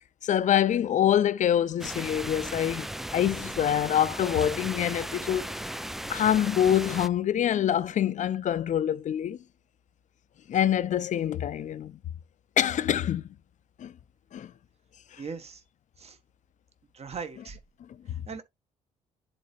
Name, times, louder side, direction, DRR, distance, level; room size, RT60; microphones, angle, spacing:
voice 1, 0.2-5.6 6.1-9.4 10.5-12.0 12.6-13.2 13.8-13.9 14.3-14.5 15.1-15.2, left 10 dB, 45° left, 0.6 m, -25 dB
sound 1, 1.8-7.1, right 1 dB, ahead, 0.3 m, -36 dB
voice 2, 15.2-15.6 16.0-16.2 16.9-17.6 18.3-18.4, right 5 dB, 35° right, 1.3 m, -38 dB
10.5 x 4.3 x 2.6 m
figure-of-eight pair, 45°, 18 cm